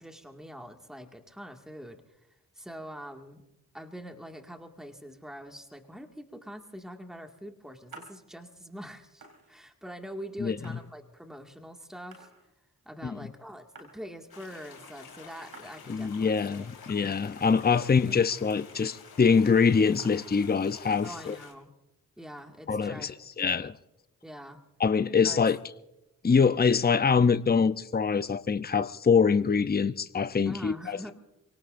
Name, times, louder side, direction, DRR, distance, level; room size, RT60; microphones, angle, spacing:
voice 1, 0.0-2.0 2.6-3.4 3.7-12.3 12.9-16.7 17.7-17.8 21.0-21.7 22.2-23.1 24.2-24.6 25.2-25.4 30.5-31.1, equal, ahead, 2.1 m, -44 dB
sound 1, 7.9-8.2 8.8-8.9 9.1-9.9 10.6-11.5 12.0-12.8 13.0-13.1 13.3-14.6 15.3-16.1 16.4-16.5 16.8-17.7 17.9-18.0 18.3-19.1 19.4-19.5 19.7-20.6 22.2-22.8, right 3 dB, 80° right, 4.1 m, -54 dB
sound 2, 14.3-21.5, left 6 dB, 80° left, 2.6 m, -49 dB
voice 2, 15.9-21.4 22.7-23.8 24.8-25.6 26.2-31.1, left 5 dB, 25° left, 0.7 m, -24 dB
27.5 x 18.5 x 2.6 m
cardioid pair, 40°, 36 cm